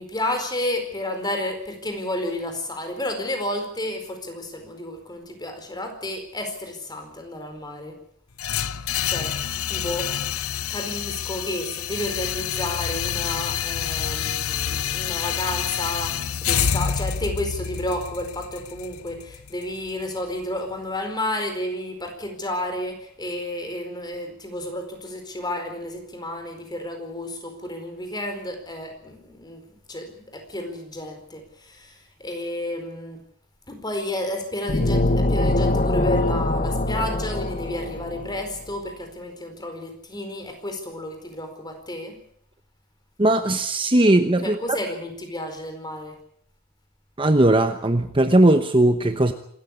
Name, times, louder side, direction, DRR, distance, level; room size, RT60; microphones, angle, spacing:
voice 1, 0.0-8.0 8.8-10.1 10.7-33.2 33.7-42.2 44.4-46.2, left 1 dB, 20° left, 6 dB, 4.6 m, -31 dB
sound 1, 8.4-20.4, left 8 dB, 85° left, 0.8 m, -28 dB
sound 2, 34.7-38.4, left 2 dB, 35° left, 1.3 m, -23 dB
voice 2, 43.2-44.8 47.2-49.3, right 1 dB, 25° right, 8 dB, 1.0 m, -18 dB
26.0 x 14.0 x 8.4 m, 0.67 s
head